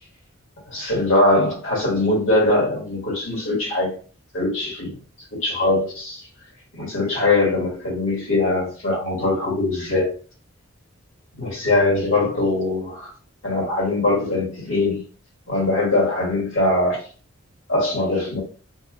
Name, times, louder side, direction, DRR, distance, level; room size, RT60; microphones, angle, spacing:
voice 1, 0.7-3.9 4.3-5.0 5.3-6.3 6.7-10.1 11.4-13.1 13.4-15.0 15.5-17.0 17.7-18.4, left 2 dB, 65° left, 1.5 m, -21 dB
2.6 x 2.0 x 3.6 m
head